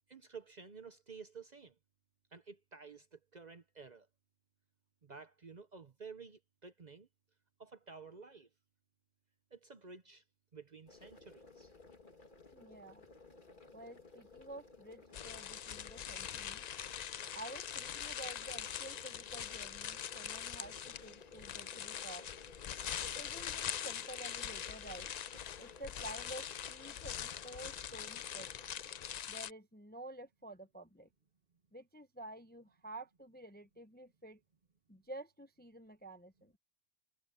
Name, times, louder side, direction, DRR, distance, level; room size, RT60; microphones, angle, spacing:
voice 1, 0.1-1.8 2.3-4.1 5.0-7.1 7.6-8.5 9.5-10.2 10.5-11.7, right 5 dB, 40° right, 0.8 m, -52 dB
sound 1, 10.9-29.2, left 3 dB, 40° left, 2.1 m, -57 dB
voice 2, 12.5-13.0 13.7-16.6 17.3-22.2 23.0-25.1 25.6-28.5 29.3-31.1 31.7-34.4 34.9-36.5, right 1 dB, 10° left, 0.6 m, -50 dB
sound 2, 15.1-29.5, left 9 dB, 90° left, 0.3 m, -43 dB
omnidirectional pair, 1.3 m